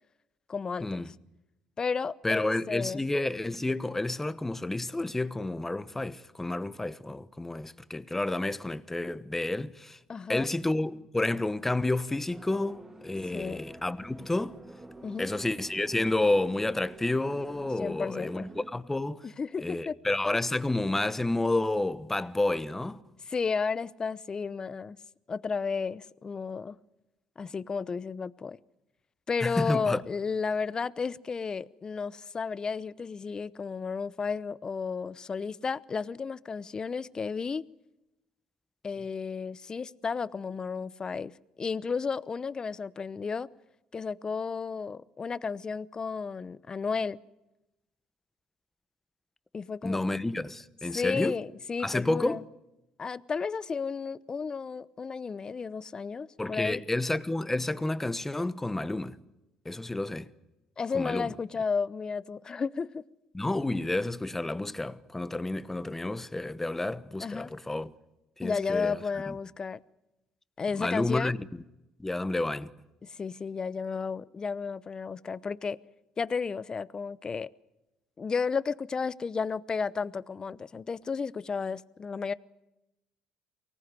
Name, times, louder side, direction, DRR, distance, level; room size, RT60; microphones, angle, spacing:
voice 1, 0.5-1.1 1.8-3.0 10.1-10.5 13.3-13.6 15.0-15.3 17.8-18.5 19.2-20.0 23.3-25.0 25.3-26.8 27.4-28.6 29.3-37.6 38.8-43.5 43.9-47.2 49.5-50.0 50.9-52.4 53.0-56.8 60.8-63.0 67.2-67.5 68.4-69.8 70.6-71.3 73.0-75.8 76.2-77.5 78.2-82.3, left 5 dB, 35° left, 0.8 m, -33 dB
voice 2, 2.2-10.0 10.3-14.6 15.2-19.3 19.6-23.0 29.4-30.0 49.8-51.3 51.8-52.4 56.4-59.2 59.6-60.3 60.9-61.3 63.3-67.9 68.4-69.0 69.3-69.4 70.8-71.6 72.0-72.7, left 2 dB, 15° left, 1.2 m, -30 dB
sound 1, 12.3-18.7, right 2 dB, 15° right, 1.9 m, -48 dB
24.0 x 18.5 x 9.8 m
supercardioid pair, 75°, 2 cm